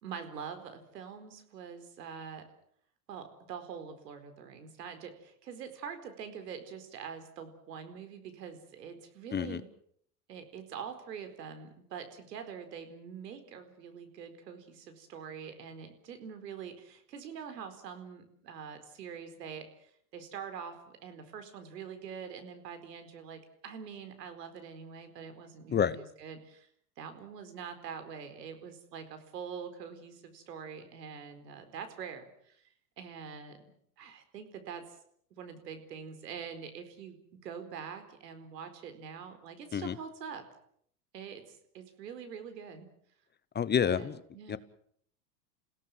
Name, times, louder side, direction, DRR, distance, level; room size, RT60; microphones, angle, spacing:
voice 1, 0.0-2.4 3.1-9.7 10.3-26.7 27.0-32.6 33.0-33.7 34.0-35.0 35.3-40.4 41.1-42.9 43.8-44.6, right 7 dB, 85° right, 9 dB, 4.6 m, -44 dB
voice 2, 43.5-44.2 44.5-44.6, left 8 dB, 20° left, 16 dB, 1.0 m, -28 dB
29.0 x 17.0 x 7.6 m, 0.66 s
hypercardioid pair, 105°, 48 cm